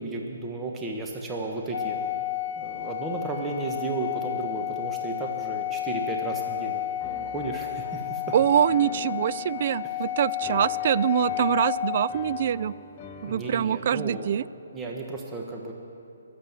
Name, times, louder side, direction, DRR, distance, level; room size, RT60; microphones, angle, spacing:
voice 1, 0.0-2.0 2.6-8.3 13.3-14.3 14.7-15.7, right 3 dB, 15° right, 0 dB, 1.4 m, -34 dB
Organ, 1.7-12.6, left 13 dB, 45° left, 1.3 m, -32 dB
Piano, 7.0-13.8, left 5 dB, 30° left, 1.0 m, -45 dB
voice 2, 8.3-12.7 13.2-14.4, right 9 dB, 50° right, 18 dB, 0.3 m, -24 dB
22.0 x 7.6 x 7.5 m, 2.6 s
figure-of-eight pair, 140°, 0 cm